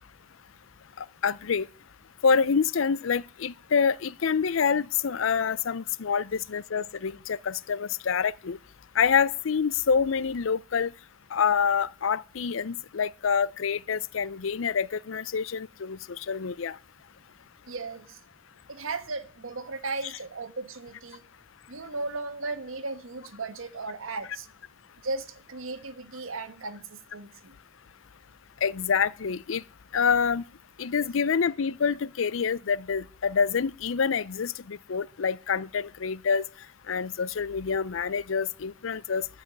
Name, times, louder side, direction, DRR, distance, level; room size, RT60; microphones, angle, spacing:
voice 1, 1.0-1.7 2.2-8.6 9.0-10.9 11.3-16.8 28.6-29.6 29.9-30.4 30.8-36.4 36.9-39.3, left 6 dB, 70° left, 0.5 m, -27 dB
voice 2, 17.7-18.2 18.7-21.2 21.7-24.5 25.0-27.5, right 3 dB, 80° right, 1.2 m, -36 dB
13.0 x 5.6 x 9.1 m
head